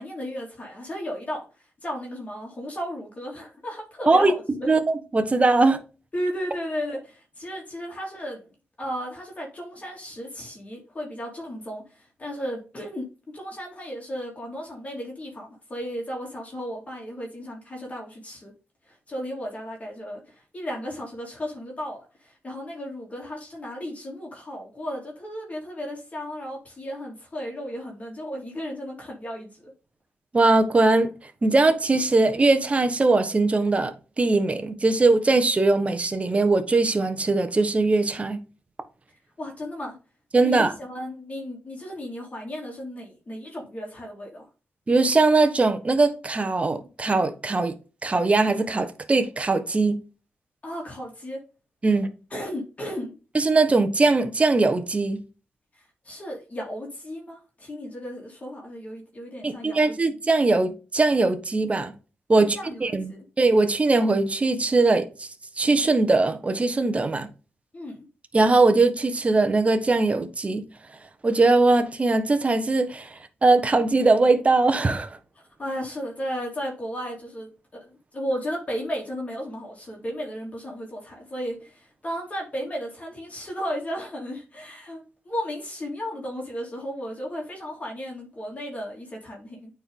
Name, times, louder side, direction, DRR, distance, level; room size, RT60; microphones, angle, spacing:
voice 1, 0.0-4.7 6.1-8.4 8.8-13.1 13.3-18.5 18.9-29.7 39.4-40.0 40.4-44.4 50.6-51.4 52.3-53.2 55.8-59.9 62.5-63.3 67.7-68.0 75.6-89.7, equal, 35° left, 2.9 m, -34 dB
voice 2, 4.1-5.8 30.3-31.1 31.4-38.4 40.3-40.7 44.9-47.7 48.0-50.0 51.8-52.1 53.3-55.2 59.4-61.9 62.3-65.3 65.6-67.3 68.3-70.6 71.2-75.2, right 3 dB, 30° right, 1.2 m, -21 dB
8.9 x 4.5 x 3.7 m
cardioid pair, 95°, 4 cm